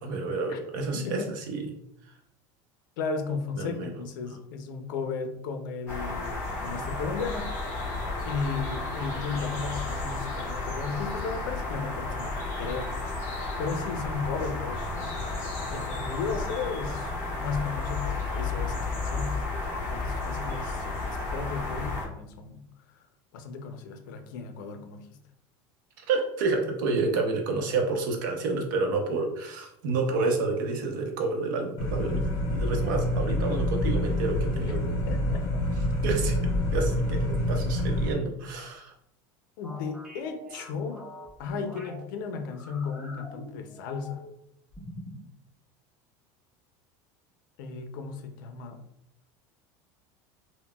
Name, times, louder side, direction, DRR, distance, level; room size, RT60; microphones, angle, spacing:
voice 1, 0.0-1.7 3.5-3.9 26.1-35.0 36.0-36.4 36.7-38.9, right 3 dB, 85° right, 3 dB, 0.7 m, -29 dB
voice 2, 0.9-1.3 3.0-7.7 8.2-13.3 13.6-15.3 15.7-17.1 17.4-22.7 23.3-25.2 35.1-35.6 39.6-41.1 41.4-44.3 47.6-48.8, left 5 dB, 85° left, 6 dB, 0.5 m, -35 dB
sound 1, 5.9-22.0, left 3 dB, 25° left, 1.1 m, -32 dB
sound 2, 31.8-38.1, left 1 dB, 45° left, 0.8 m, -27 dB
sound 3, 39.6-42.0 42.5-44.4 44.7-45.3, equal, 5° right, 0.6 m, -45 dB
3.8 x 2.1 x 2.2 m, 0.78 s
cardioid pair, 165°, 10 cm